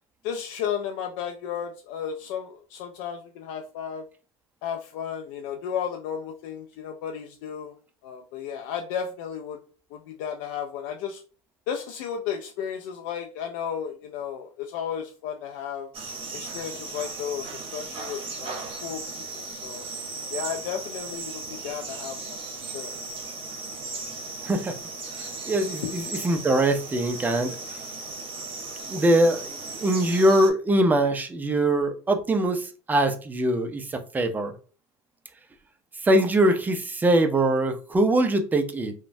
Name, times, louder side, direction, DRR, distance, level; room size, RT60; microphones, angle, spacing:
voice 1, 0.2-4.1 4.6-7.7 8.0-9.6 9.9-11.2 11.7-15.9 16.3-19.9 20.3-22.4 22.6-23.0 25.8-25.9, left 8 dB, 70° left, 0.4 m, -33 dB
sound 1, 15.9-30.5, right 3 dB, 35° right, 0.8 m, -36 dB
voice 2, 24.4-24.7 25.5-27.5 28.9-34.5 36.0-38.9, right 1 dB, 10° right, 0.4 m, -22 dB
2.9 x 2.1 x 2.6 m
supercardioid pair, 125°, 15 cm